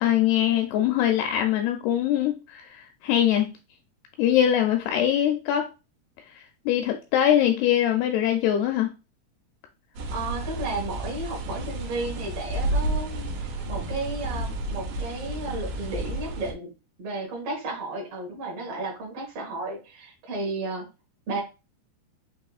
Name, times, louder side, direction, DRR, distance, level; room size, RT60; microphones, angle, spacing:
voice 1, 0.0-3.5 4.2-5.7 6.3-8.9, left 11 dB, 85° left, 5 dB, 2.3 m, -23 dB
sound 1, 10.0-16.5, right 2 dB, 80° right, 2.9 m, -31 dB
voice 2, 10.1-16.7 17.0-20.8 21.3-21.4, right 2 dB, 65° right, -1 dB, 1.4 m, -33 dB
6.2 x 2.8 x 2.3 m, 0.29 s
omnidirectional pair, 4.8 m